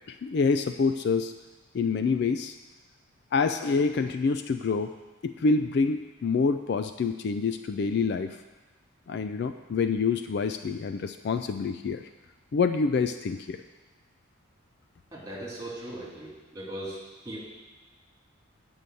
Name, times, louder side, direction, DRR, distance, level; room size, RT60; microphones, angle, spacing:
voice 1, 0.1-1.3 1.7-2.5 3.3-4.9 5.2-8.4 9.1-12.0 12.5-13.6, left 4 dB, 50° left, 9 dB, 0.3 m, -27 dB
voice 2, 15.1-17.4, right 1 dB, 15° right, -6 dB, 2.8 m, -39 dB
8.2 x 5.4 x 7.6 m, 1.2 s
head